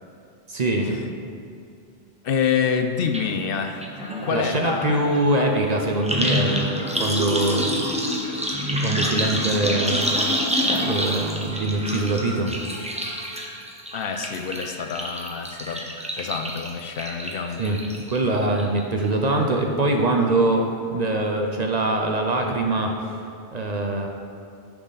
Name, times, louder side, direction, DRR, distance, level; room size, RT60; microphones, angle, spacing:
voice 1, 0.5-1.2 4.3-7.9 8.5-8.6 8.8-10.3 10.8-12.9 17.6-17.8 18.1-23.1 23.5-24.1, right 2 dB, 45° right, 2 dB, 0.7 m, -23 dB
voice 2, 2.2-3.9 4.2-5.2 13.9-15.9 16.2-17.6, left 6 dB, 65° left, 6 dB, 0.7 m, -27 dB
sound 1, 3.1-3.2 3.5-18.2 18.6-19.0 19.3-19.4, equal, 5° right, 0.7 m, -27 dB
9.7 x 5.9 x 4.0 m, 2.4 s
omnidirectional pair, 1.1 m